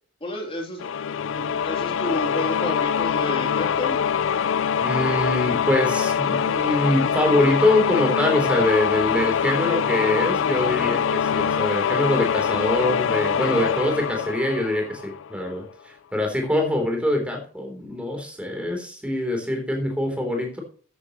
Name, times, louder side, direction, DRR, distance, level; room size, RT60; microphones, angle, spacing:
voice 1, 0.2-0.8 1.4-4.0, left 1 dB, 25° left, 0 dB, 3.3 m, -30 dB
sound 1, 0.8-15.4, left 7 dB, 65° left, 0.4 m, -24 dB
voice 2, 4.8-20.6, left 1 dB, 5° right, 2 dB, 3.5 m, -24 dB
13.5 x 9.6 x 3.1 m, 0.43 s
head